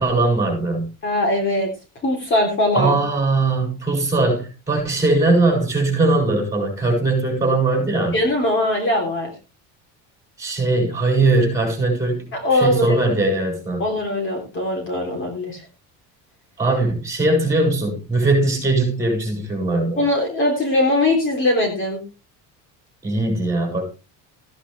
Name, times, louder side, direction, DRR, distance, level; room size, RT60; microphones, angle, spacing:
voice 1, 0.0-0.9 2.8-8.2 10.4-13.8 16.6-20.0 23.0-23.8, right 2 dB, 10° right, 7.2 m, -20 dB
voice 2, 1.0-1.7 2.0-3.0 8.1-9.3 12.3-13.0 13.8-15.6 20.0-22.0, left 1 dB, 35° left, 3.6 m, -21 dB
16.0 x 10.0 x 3.4 m
cardioid pair, 165°, 36 cm